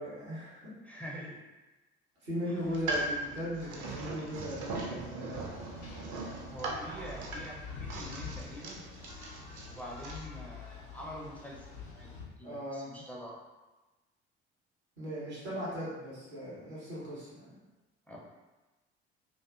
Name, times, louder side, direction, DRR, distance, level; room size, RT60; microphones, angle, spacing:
voice 1, 0.0-0.7 2.2-5.5 12.4-13.0 15.0-17.6, equal, 90° right, -8 dB, 0.9 m, -38 dB
voice 2, 0.8-1.4 2.5-2.6 6.5-8.8 9.6-12.1 12.4-13.4 18.1-18.2, equal, 5° left, -4 dB, 0.4 m, -45 dB
sound 1, 2.6-10.2, right 2 dB, 65° right, 0.5 m, -39 dB
sound 2, 5.3-12.2, left 5 dB, 80° left, 0.5 m, -46 dB
2.4 x 2.4 x 2.3 m, 1.1 s
figure-of-eight pair, 50°, 32 cm